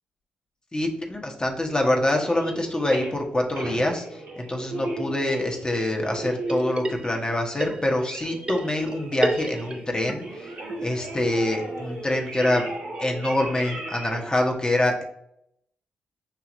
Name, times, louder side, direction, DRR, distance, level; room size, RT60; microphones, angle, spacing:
voice 1, 0.7-10.5 10.8-12.6 13.0-15.0, left 1 dB, 20° left, 1 dB, 1.1 m, -25 dB
sound 1, 2.1-3.1 3.5-9.9 10.2-14.3, right 2 dB, 75° right, 1.3 m, -35 dB
sound 2, 6.5-7.3 7.6-10.1 10.4-10.5 10.7-10.8 11.2-11.3 11.6-11.7 11.9-12.0 12.4-12.5, right 1 dB, 25° right, 0.7 m, -31 dB
6.6 x 2.8 x 2.5 m, 0.73 s
supercardioid pair, 45°, 4 cm